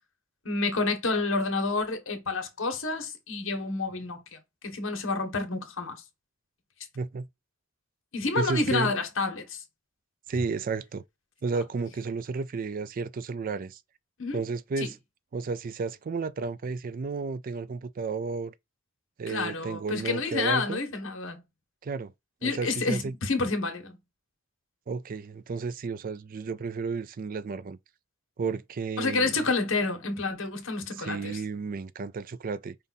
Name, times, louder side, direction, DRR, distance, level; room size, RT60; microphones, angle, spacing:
voice 1, 0.4-4.4 4.6-6.0 8.1-9.6 14.2-14.4 14.8-14.9 19.3-21.4 22.4-24.0 29.0-31.4, left 3 dB, 65° left, 1.4 m, -29 dB
voice 2, 7.0-7.3 8.4-8.9 10.3-11.0 11.4-13.8 14.3-15.0 15.3-18.5 19.2-20.8 21.8-22.1 22.4-23.1 24.9-27.8 28.4-29.3 31.0-32.8, right 4 dB, 40° right, 0.4 m, -32 dB
5.3 x 2.5 x 4.0 m
head